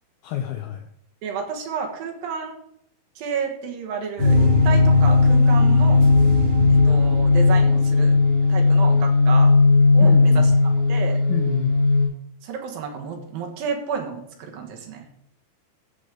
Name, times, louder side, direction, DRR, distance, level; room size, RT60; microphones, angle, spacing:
voice 1, 0.2-0.8 10.0-10.6 11.3-11.9, left 11 dB, 80° left, 5 dB, 2.3 m, -28 dB
voice 2, 1.2-2.6 3.2-6.0 6.7-8.1 8.5-9.6 9.9-10.5 10.9-11.2 12.4-15.1, right 6 dB, 65° right, 2 dB, 2.8 m, -31 dB
sound 1, 4.2-12.1, left 3 dB, 40° right, 5.2 m, -16 dB
14.0 x 5.2 x 5.1 m, 0.71 s
omnidirectional pair, 5.0 m